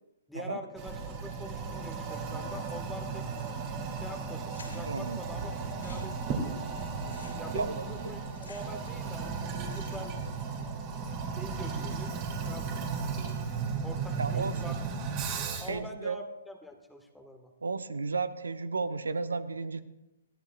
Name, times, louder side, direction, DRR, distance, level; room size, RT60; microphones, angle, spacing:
voice 1, 0.3-3.3 3.9-5.5 5.8-10.1 11.4-12.1 12.4-12.7 13.8-14.8 15.6-17.5, equal, ahead, 3 dB, 1.6 m, -44 dB
Toilet flush, 0.8-15.8, right 5 dB, 35° right, 2.7 m, -35 dB
sound 1, 3.3-3.8 4.1-4.2 4.5-5.1 5.6-9.1 9.4-10.2, left 4 dB, 75° left, 4.6 m, -54 dB
voice 2, 4.8-5.2 7.5-7.8 14.2-14.6 15.7-16.2 17.6-19.8, right 4 dB, 80° right, 13 dB, 0.8 m, -33 dB
20.5 x 14.5 x 2.4 m, 0.96 s
figure-of-eight pair, 125°, 0 cm